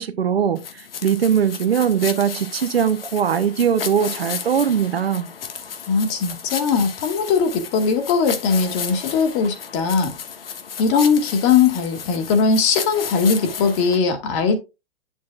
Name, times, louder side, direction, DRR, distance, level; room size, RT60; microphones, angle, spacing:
voice 1, 0.0-5.3, right 8 dB, 80° right, 1.0 m, -21 dB
sound 1, 0.6-14.0, left 7 dB, 70° left, 1.6 m, -33 dB
voice 2, 5.9-10.1 10.8-14.6, left 5 dB, 40° left, 2.3 m, -19 dB
9.5 x 7.3 x 2.4 m
figure-of-eight pair, 115°, 30 cm